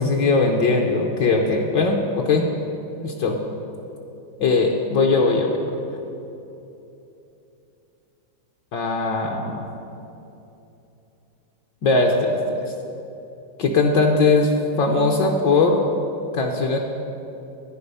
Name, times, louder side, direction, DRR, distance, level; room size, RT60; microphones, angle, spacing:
voice 1, 0.0-2.5 3.0-3.4 4.4-5.6 8.7-9.7 11.8-12.6 13.6-15.8 16.3-16.8, left 3 dB, 65° left, 2 dB, 1.3 m, -20 dB
11.5 x 9.5 x 5.4 m, 2.9 s
omnidirectional pair, 2.3 m